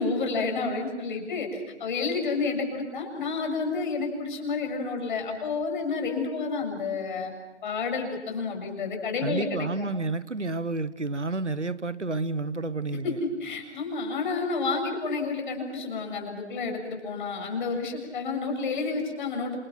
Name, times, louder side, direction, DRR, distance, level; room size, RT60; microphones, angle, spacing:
voice 1, 0.0-7.3 7.6-9.7 13.0-19.6, left 4 dB, 45° left, 4 dB, 7.1 m, -30 dB
voice 2, 9.2-13.2, right 3 dB, 85° right, 16 dB, 1.3 m, -30 dB
28.5 x 27.5 x 6.1 m, 1.1 s
figure-of-eight pair, 135°, 34 cm